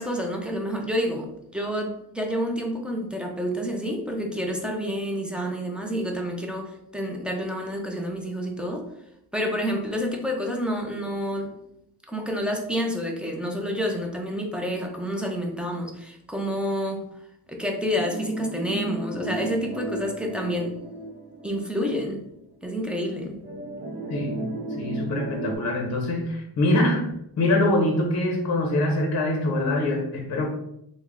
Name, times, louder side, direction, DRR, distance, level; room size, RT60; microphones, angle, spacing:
voice 1, 0.0-8.9 9.3-11.5 12.1-17.0 17.5-20.7 21.4-22.2 22.6-23.4, equal, 5° right, 0 dB, 0.4 m, -29 dB
sound 1, 17.9-22.2 22.6-22.7 23.4-25.6, right 2 dB, 80° right, 0.8 m, -34 dB
voice 2, 24.1-24.4 24.8-27.0 27.4-30.5, left 1 dB, 40° left, 2 dB, 0.6 m, -24 dB
3.3 x 2.1 x 3.5 m, 0.78 s
wide cardioid pair, 125°, 39 cm